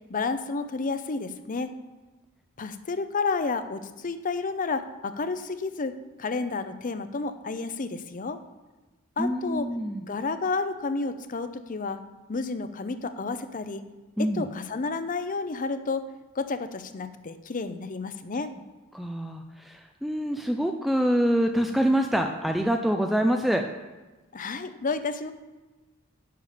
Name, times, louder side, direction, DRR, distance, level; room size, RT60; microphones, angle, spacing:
voice 1, 0.1-1.7 2.6-8.4 9.2-9.7 10.1-12.0 12.3-13.8 14.2-16.0 16.3-18.5 24.3-25.3, left 4 dB, 40° left, 11 dB, 0.6 m, -31 dB
voice 2, 9.2-10.0 14.2-14.4 18.9-23.6, equal, ahead, 4 dB, 0.4 m, -25 dB
10.5 x 6.8 x 5.0 m, 1.2 s
head